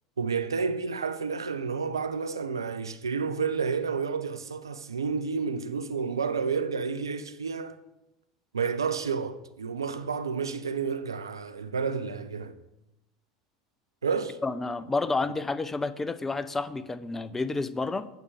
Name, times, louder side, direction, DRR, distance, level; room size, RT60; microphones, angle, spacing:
voice 1, 0.2-7.8 8.5-12.5 14.0-14.4, right 5 dB, 80° right, 0.4 m, -30 dB
voice 2, 14.4-18.1, left 3 dB, 15° left, 0.4 m, -30 dB
9.0 x 6.6 x 3.6 m
figure-of-eight pair, 75°, 2 cm